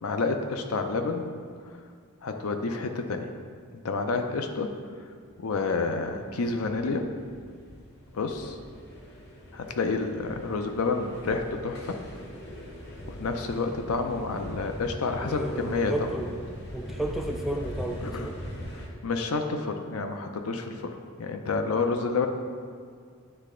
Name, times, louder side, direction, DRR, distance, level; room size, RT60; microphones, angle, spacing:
voice 1, 0.0-1.2 1.6-1.8 2.2-3.3 3.8-4.7 5.4-7.0 8.1-8.6 9.5-11.9 13.1-15.9 18.0-18.3 19.0-20.9 21.2-22.3, left 4 dB, 80° left, 6 dB, 0.6 m, -29 dB
sound 1, 5.3-18.9, equal, 50° left, 1.0 m, -41 dB
voice 2, 15.3-16.4 16.7-18.4, right 1 dB, ahead, 2 dB, 0.3 m, -33 dB
9.7 x 3.3 x 3.8 m, 2.1 s
head